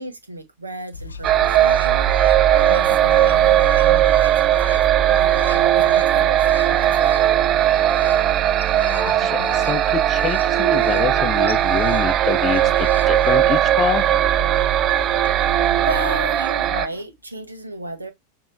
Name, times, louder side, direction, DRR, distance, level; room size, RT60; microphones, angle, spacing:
voice 1, 0.0-7.2 12.5-12.7 15.8-18.1, right 1 dB, 80° right, 1.1 m, -33 dB
sound 1, 0.9-16.2, left 4 dB, 75° left, 0.4 m, -37 dB
sound 2, 1.2-16.9, right 12 dB, 35° right, 0.3 m, -18 dB
sound 3, 5.5-17.0, right 1 dB, 60° right, 1.7 m, -46 dB
voice 2, 8.9-14.0, left 9 dB, 30° left, 0.7 m, -26 dB
7.0 x 2.9 x 2.6 m
figure-of-eight pair, 90°, 0 cm